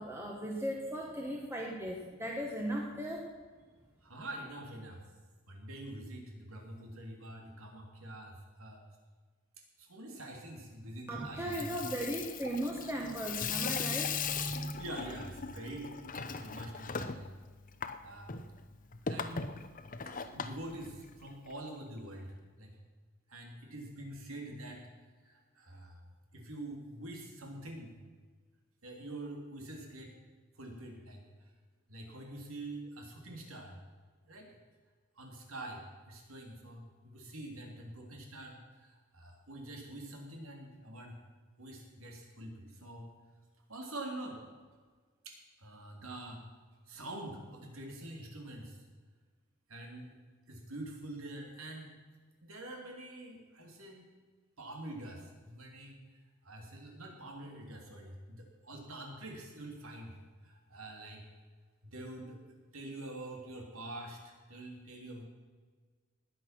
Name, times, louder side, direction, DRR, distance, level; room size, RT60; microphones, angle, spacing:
voice 1, 0.0-3.4 11.1-14.8, right 1 dB, 10° right, -1 dB, 1.4 m, -37 dB
voice 2, 4.0-5.0 5.5-8.8 9.8-11.9 14.8-17.3 18.0-18.4 19.0-19.5 20.3-22.7 23.3-24.8 25.2-26.0 26.3-28.0 28.8-30.1 30.6-31.5 31.9-33.8 34.3-34.6 35.1-41.2 41.6-43.1 43.7-44.4 45.2-46.5 46.9-48.8 49.7-50.1 50.5-52.0 52.4-54.0 54.6-56.0 56.4-60.1 60.4-61.2 61.8-62.4 62.7-65.2, right 1 dB, 75° right, 1 dB, 3.2 m, -46 dB
Water tap faucet / Sink (filling or washing), 11.3-21.5, left 6 dB, 40° left, 0.8 m, -39 dB
19.5 x 8.4 x 6.0 m, 1.5 s
head